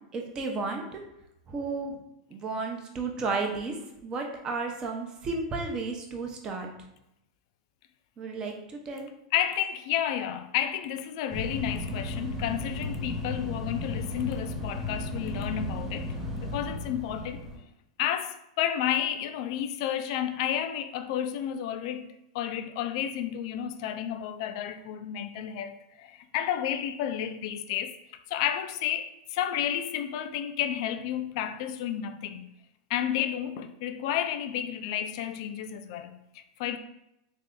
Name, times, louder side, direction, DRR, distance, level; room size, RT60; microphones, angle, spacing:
voice 1, 0.1-1.0 1.5-2.0 2.3-3.8 4.0-6.7 8.2-9.1, right 3 dB, 25° right, 0.7 m, -33 dB
voice 2, 9.3-16.1 16.4-17.5 18.0-22.1 22.3-27.9 28.3-32.5 32.9-36.8, left 10 dB, 55° left, 0.4 m, -31 dB
sound 1, 11.3-17.6, left 2 dB, 10° right, 1.3 m, -34 dB
3.2 x 2.6 x 3.7 m
supercardioid pair, 135°, 3 cm